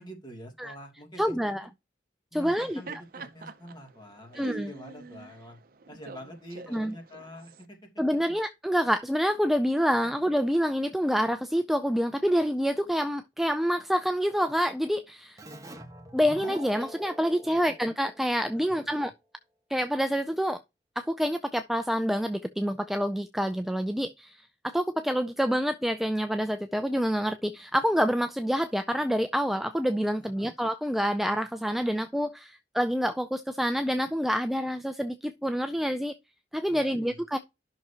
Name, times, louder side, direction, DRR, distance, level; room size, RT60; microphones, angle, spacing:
voice 1, 0.0-1.7 2.3-5.6 5.9-7.8 10.0-10.1 17.4-17.7 18.7-19.1 30.2-30.5 36.7-37.2, equal, 25° left, 2.8 m, -46 dB
voice 2, 1.2-1.6 2.3-2.8 4.4-4.7 6.7-6.9 8.0-15.4 16.1-19.1 19.7-20.6 21.0-24.4 24.6-36.1 36.5-37.4, equal, ahead, 0.4 m, -27 dB
Laughter, 2.4-7.6, right 4 dB, 55° right, 0.7 m, -45 dB
Keyboard (musical), 15.4-18.8, equal, 20° right, 1.4 m, -45 dB
12.0 x 6.1 x 2.9 m
head